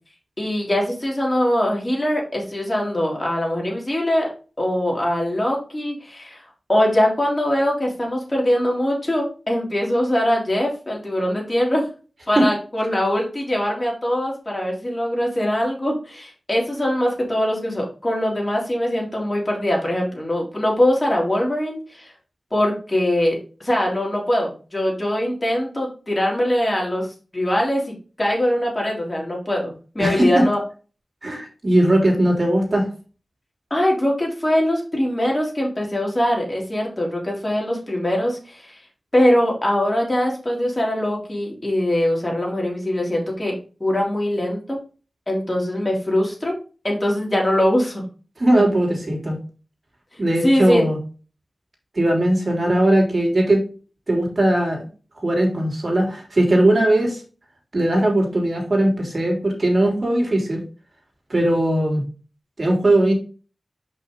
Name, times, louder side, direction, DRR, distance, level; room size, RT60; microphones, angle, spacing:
voice 1, 0.4-4.3 4.6-6.4 6.7-11.9 12.3-22.1 22.5-27.1 27.3-27.8 28.2-30.6 33.7-38.8 39.1-43.5 43.8-44.8 45.3-46.5 46.8-48.0 50.4-50.9, left 1 dB, 25° left, -2 dB, 3.3 m, -22 dB
voice 2, 31.2-32.9 48.4-49.4 50.2-51.0 51.9-53.6 54.1-54.9 55.2-57.2 57.7-60.6 61.3-62.0 62.6-63.1, right 1 dB, 45° right, 0 dB, 3.2 m, -19 dB
5.7 x 5.6 x 3.9 m, 0.36 s
wide cardioid pair, 70°, 0 cm